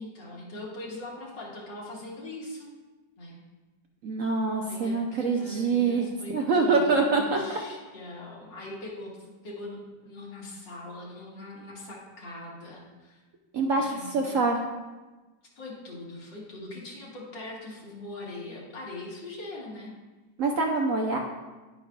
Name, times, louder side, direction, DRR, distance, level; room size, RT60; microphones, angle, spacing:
voice 1, 0.0-2.7 3.2-3.4 4.6-13.2 13.8-14.4 15.6-20.0, left 2 dB, 80° left, -4 dB, 2.5 m, -41 dB
voice 2, 4.0-7.4 13.5-14.6 20.4-21.2, right 4 dB, 60° right, 1 dB, 0.9 m, -25 dB
10.5 x 9.2 x 2.3 m, 1.2 s
omnidirectional pair, 1.9 m